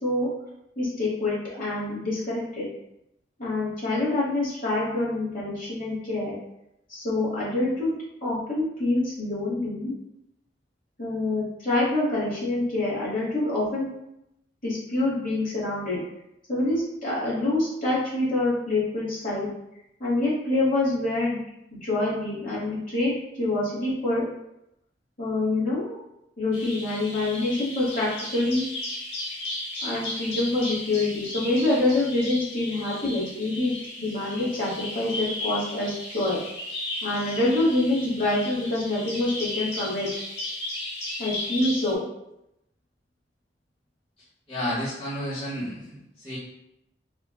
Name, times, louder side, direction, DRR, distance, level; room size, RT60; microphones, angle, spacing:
voice 1, 0.8-2.7 3.4-6.3 6.9-7.9 8.2-9.9 11.0-13.9 14.6-16.0 16.5-19.5 20.0-21.4 21.7-24.2 25.2-26.0 26.4-28.6 29.8-36.4 37.0-40.1 41.2-42.0, left 2 dB, 50° left, -7 dB, 1.1 m, -26 dB
Bird vocalization bird call bird song, 26.5-41.9, left 1 dB, 70° left, 0.8 m, -35 dB
voice 2, 44.5-46.4, equal, 35° left, -11 dB, 0.7 m, -31 dB
3.1 x 2.1 x 2.2 m, 0.85 s
head